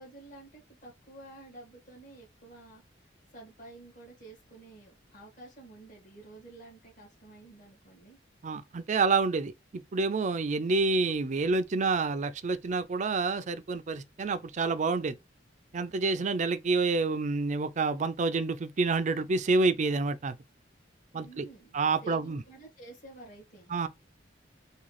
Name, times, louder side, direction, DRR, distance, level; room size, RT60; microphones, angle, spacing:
voice 1, 0.0-8.2 21.1-23.7, right 2 dB, 45° left, 1.7 m, -51 dB
voice 2, 8.4-9.5 9.9-15.2 15.7-20.4 21.1-21.4 21.7-22.4 23.7-23.9, right 3 dB, 40° right, 0.4 m, -28 dB
3.7 x 2.4 x 3.1 m
head